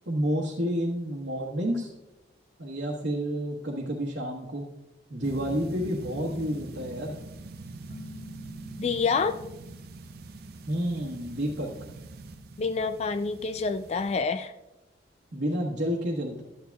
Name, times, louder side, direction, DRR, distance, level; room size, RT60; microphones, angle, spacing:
voice 1, 0.1-1.9 2.6-4.6 5.1-7.2 10.7-11.7 15.3-16.4, equal, 80° right, -4 dB, 1.3 m, -30 dB
sound 1, 5.2-14.2, right 3 dB, 55° right, 0.5 m, -44 dB
Keyboard (musical), 7.9-9.9, left 1 dB, 50° left, 1.0 m, -46 dB
voice 2, 8.8-9.4 12.6-14.5, left 4 dB, 35° left, 11 dB, 0.3 m, -27 dB
12.0 x 9.5 x 2.3 m, 0.97 s
head